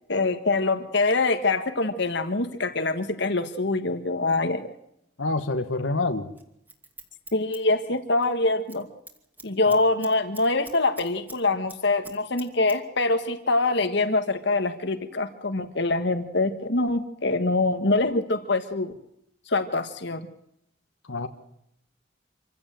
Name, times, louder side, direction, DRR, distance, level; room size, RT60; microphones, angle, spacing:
voice 1, 0.1-4.7 7.3-8.9 9.4-18.9 19.5-20.3, left 2 dB, 60° left, 9 dB, 1.6 m, -24 dB
voice 2, 5.2-6.3 9.7-9.8 21.1-21.3, left 3 dB, 85° left, 7 dB, 1.6 m, -27 dB
Scissors, 6.4-8.3 8.6-8.8 9.1-11.4 11.7-12.8 13.0-13.1, right 2 dB, 10° right, 2.6 m, -45 dB
26.5 x 16.0 x 7.8 m, 0.79 s
head